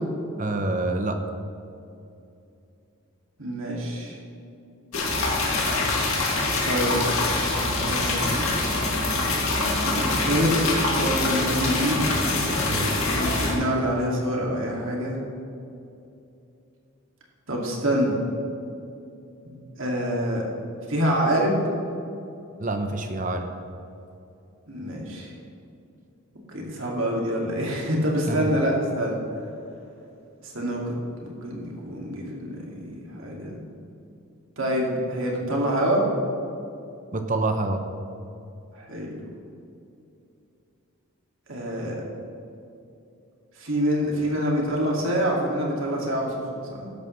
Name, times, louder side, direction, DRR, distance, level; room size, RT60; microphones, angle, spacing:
voice 1, 0.4-1.2 12.7-13.0 22.6-23.5 28.3-28.5 37.1-37.8, right 2 dB, 35° right, 6 dB, 0.8 m, -27 dB
voice 2, 3.4-4.2 6.6-7.0 7.8-8.6 9.9-12.2 13.1-15.2 17.5-18.2 19.4-20.4 20.9-21.6 24.7-25.3 26.5-29.2 30.4-33.6 34.6-36.1 38.7-39.2 41.5-42.0 43.6-46.9, equal, 65° right, -2 dB, 2.3 m, -26 dB
sound 1, 4.9-13.5, left 2 dB, 70° left, 2.3 m, -24 dB
13.0 x 10.5 x 3.2 m, 2.7 s
head